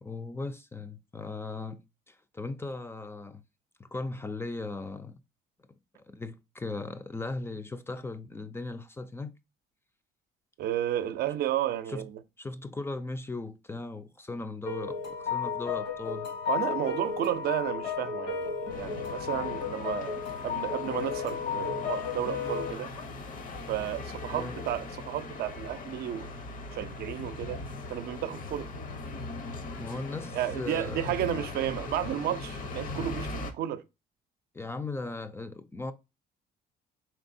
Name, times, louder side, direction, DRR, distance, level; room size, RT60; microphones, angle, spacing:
voice 1, 0.0-3.4 3.8-5.2 6.1-9.3 11.9-12.1 12.4-16.3 24.3-24.6 29.8-31.1 34.5-35.9, left 3 dB, 15° left, 0.4 m, -38 dB
voice 2, 10.6-12.2 16.5-20.1 20.4-22.9 23.7-26.3 26.7-27.6 27.9-28.7 30.3-33.8, right 12 dB, 65° right, 0.5 m, -32 dB
sound 1, 14.7-22.7, left 6 dB, 80° left, 2.0 m, -33 dB
sound 2, 18.7-33.5, left 3 dB, 55° left, 0.9 m, -40 dB
4.4 x 3.3 x 2.6 m
cardioid pair, 110°, 17 cm